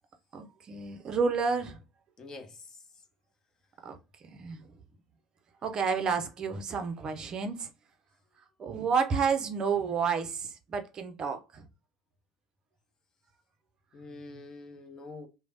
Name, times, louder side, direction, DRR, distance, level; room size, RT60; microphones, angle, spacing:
voice 1, 0.3-1.8 3.8-4.0 4.3-4.7 5.6-7.7 8.6-11.6, right 5 dB, 35° right, 0.5 m, -30 dB
voice 2, 2.2-2.6 13.9-15.3, left 3 dB, 30° left, 0.7 m, -45 dB
3.1 x 2.1 x 2.6 m
figure-of-eight pair, 65°, 2 cm